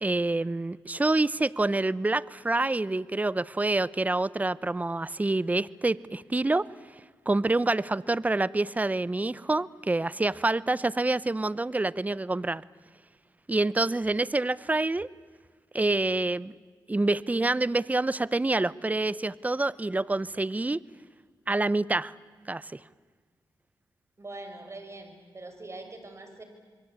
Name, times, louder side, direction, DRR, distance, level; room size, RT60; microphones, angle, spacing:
voice 1, 0.0-6.7 7.3-12.6 13.5-15.1 15.7-16.5 16.9-20.8 21.5-22.1 22.5-22.8, right 2 dB, 20° right, 20 dB, 0.7 m, -27 dB
voice 2, 24.2-26.4, right 2 dB, 35° right, 6 dB, 5.8 m, -43 dB
26.5 x 22.5 x 8.8 m, 1.5 s
cardioid pair, 55°, 8 cm